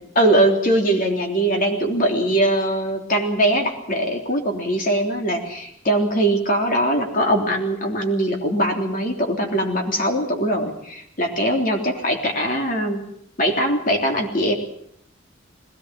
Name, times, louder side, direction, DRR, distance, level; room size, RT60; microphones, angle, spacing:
voice 1, 0.0-13.0 13.4-14.5, right 1 dB, 45° left, 2 dB, 3.3 m, -21 dB
21.0 x 18.5 x 7.7 m, 0.69 s
head